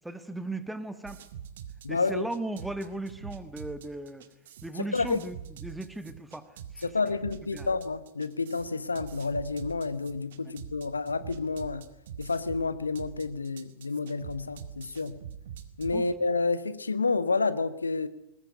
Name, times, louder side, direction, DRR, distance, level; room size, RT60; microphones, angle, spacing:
voice 1, 0.0-1.2 1.9-4.3 4.6-6.5 6.7-6.9 7.5-7.7 15.9-16.1, right 2 dB, 5° right, 1.7 m, -37 dB
sound 1, 1.0-16.0, right 8 dB, 60° right, 2.1 m, -44 dB
voice 2, 1.8-2.3 4.9-5.2 6.8-11.9 12.2-15.2 15.8-18.1, left 4 dB, 75° left, 1.1 m, -29 dB
21.0 x 20.0 x 8.4 m
figure-of-eight pair, 90°, 0 cm